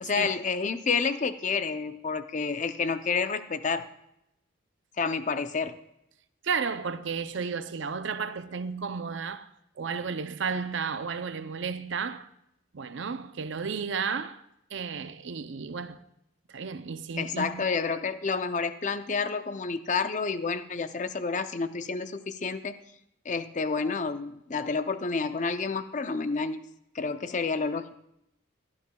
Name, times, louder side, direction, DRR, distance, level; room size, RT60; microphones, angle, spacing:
voice 1, 0.0-3.9 5.0-5.7 17.2-22.8 23.3-26.6 26.9-27.9, left 4 dB, 40° left, 0.5 m, -29 dB
voice 2, 6.4-9.5 9.8-12.3 12.7-14.4 14.7-16.0 16.5-17.7, right 5 dB, 65° right, 0.6 m, -33 dB
17.0 x 12.0 x 2.3 m
head